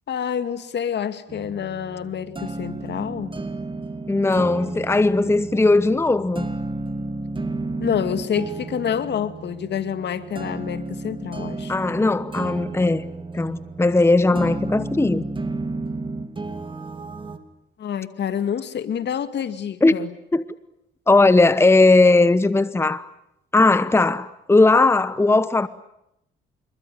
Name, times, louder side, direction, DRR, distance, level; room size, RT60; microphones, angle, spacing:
voice 1, 0.1-3.4 7.8-11.7 14.3-14.4 17.8-20.1, left 8 dB, 60° left, 2.2 m, -27 dB
sound 1, 1.3-17.4, right 3 dB, 25° right, 2.7 m, -32 dB
voice 2, 4.1-6.5 11.7-13.1 13.3-15.3 19.8-19.9 20.3-20.4 21.1-23.1 23.5-25.7, left 2 dB, 10° left, 1.0 m, -18 dB
26.5 x 23.0 x 9.5 m
cardioid pair, 90°, 20 cm